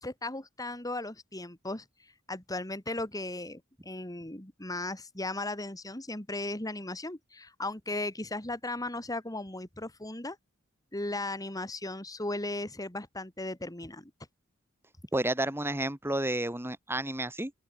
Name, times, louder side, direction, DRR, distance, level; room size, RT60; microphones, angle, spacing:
voice 1, 0.0-10.4 10.9-14.1, left 2 dB, 15° left, 2.7 m, -36 dB
voice 2, 15.1-17.5, right 1 dB, 10° right, 3.0 m, -31 dB
open air
head